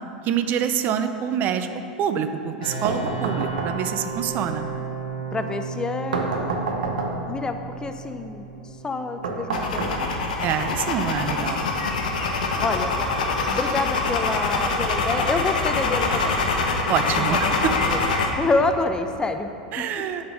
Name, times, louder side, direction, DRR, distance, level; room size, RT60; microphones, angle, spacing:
voice 1, 0.2-1.7 2.0-4.7 10.4-11.6 16.9-17.7 19.7-20.3, right 8 dB, 45° right, 9 dB, 0.5 m, -26 dB
sound 1, 2.6-15.4, right 5 dB, 90° left, 1.2 m, -37 dB
sound 2, 2.8-4.1 6.1-7.4 9.2-10.4, right 3 dB, 75° right, 0.8 m, -28 dB
voice 2, 5.3-6.5 7.3-8.4 8.8-10.0 10.4-10.5 12.6-13.0 13.5-16.4 17.2-17.4 17.7-18.0 18.4-19.8, left 3 dB, 15° left, 8 dB, 0.5 m, -27 dB
sound 3, 9.5-18.3, left 3 dB, 75° left, 0.8 m, -24 dB
8.2 x 4.4 x 5.8 m, 2.7 s
hypercardioid pair, 90°, 4 cm